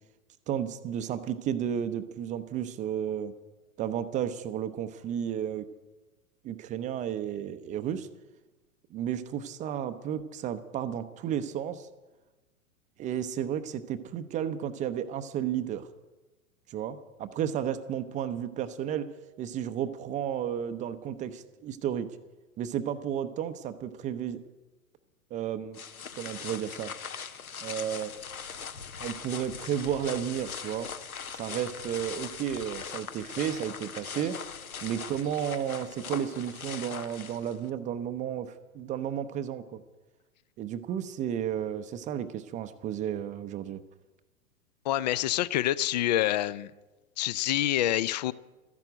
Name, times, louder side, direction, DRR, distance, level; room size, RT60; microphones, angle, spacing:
voice 1, 0.5-3.3 3.8-5.7 6.4-8.1 8.9-11.9 13.0-15.9 16.7-19.1 19.4-22.1 22.6-24.4 25.3-25.8 26.2-26.9 27.6-28.1 29.0-30.9 31.3-34.4 34.8-39.8 40.6-43.8, right 9 dB, 15° right, 0.6 m, -32 dB
sound 1, 25.7-37.7, left 6 dB, 75° left, 1.0 m, -40 dB
voice 2, 44.8-46.7 47.2-48.3, left 13 dB, 30° left, 0.4 m, -27 dB
13.5 x 11.0 x 7.9 m
figure-of-eight pair, 100°, 43 cm